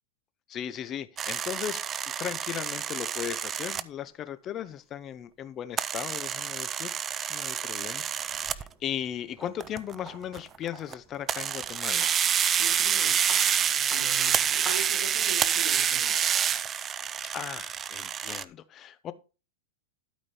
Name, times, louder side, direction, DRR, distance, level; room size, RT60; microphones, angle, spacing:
voice 1, 0.5-6.9 7.3-12.1 17.3-19.1, left 10 dB, 25° left, 0.7 m, -37 dB
sound 1, 1.2-3.8 5.8-8.7 9.6-10.0 10.3-10.9 11.3-18.4, right 8 dB, 20° right, 0.4 m, -28 dB
sound 2, 8.0-15.6, equal, ahead, 1.8 m, -48 dB
voice 2, 12.6-13.2 13.7-16.2, right 7 dB, 75° right, 2.9 m, -41 dB
12.5 x 5.1 x 4.1 m
supercardioid pair, 155°, 0 cm